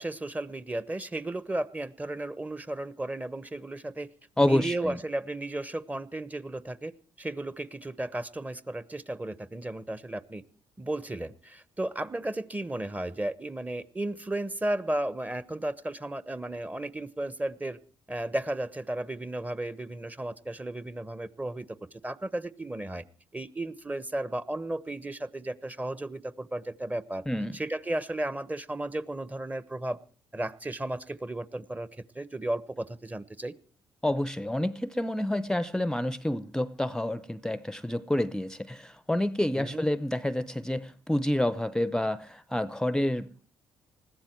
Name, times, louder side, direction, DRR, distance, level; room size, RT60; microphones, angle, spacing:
voice 1, 0.0-4.1 4.4-10.4 10.8-17.8 18.1-21.7 21.9-23.0 23.3-27.2 27.5-30.0 30.3-31.9 32.1-33.5 39.6-39.9, right 1 dB, 15° right, 1.0 m, -34 dB
voice 2, 4.4-5.0 27.3-27.6 34.0-43.4, left 1 dB, 5° left, 0.7 m, -28 dB
20.5 x 14.5 x 4.5 m
hypercardioid pair, 55°, 10 cm